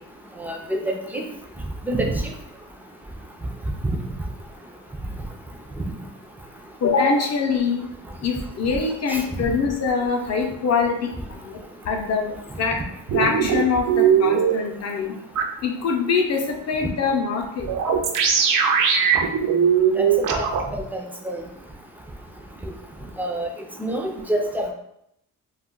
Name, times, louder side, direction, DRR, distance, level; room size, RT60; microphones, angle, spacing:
voice 1, 0.4-1.2 1.8-2.1 3.8-4.0 9.1-9.2 19.9-20.1 20.4-20.5 20.7-21.4 22.6-22.7 23.2-23.5 23.8-24.7, right 1 dB, 5° right, 1 dB, 0.4 m, -26 dB
voice 2, 6.8-7.8 8.2-11.6 11.9-12.8 13.1-15.1 15.6-17.7, left 5 dB, 50° left, 2 dB, 0.6 m, -24 dB
sound 1, 13.1-14.5 15.4-15.5 17.7-20.6, right 7 dB, 70° right, 0.5 m, -19 dB
2.3 x 2.1 x 3.7 m, 0.75 s
cardioid pair, 110°, 33 cm